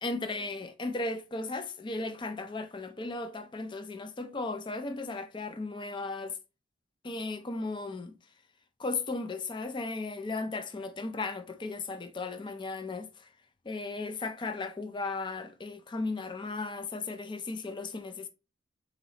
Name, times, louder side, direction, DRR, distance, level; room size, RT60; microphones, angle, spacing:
voice 1, 0.0-6.4 7.0-8.1 8.8-13.3 13.7-18.3, left 3 dB, 25° left, 0.4 m, -36 dB
3.8 x 3.1 x 4.0 m
head